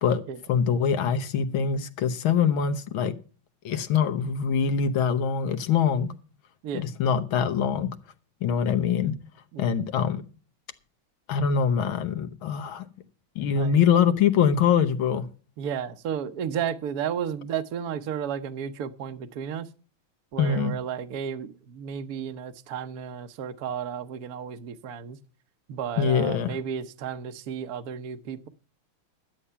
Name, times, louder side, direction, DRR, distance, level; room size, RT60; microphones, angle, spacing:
voice 1, 0.5-3.1 3.7-6.1 6.7-7.9 8.4-9.1 9.6-10.2 11.3-12.8 13.4-15.3 20.4-20.8 26.0-26.5, left 7 dB, 75° left, 1.8 m, -23 dB
voice 2, 13.4-13.8 15.6-19.7 20.3-25.2 25.7-28.5, right 8 dB, 55° right, 1.2 m, -33 dB
12.5 x 8.5 x 5.6 m
omnidirectional pair, 2.2 m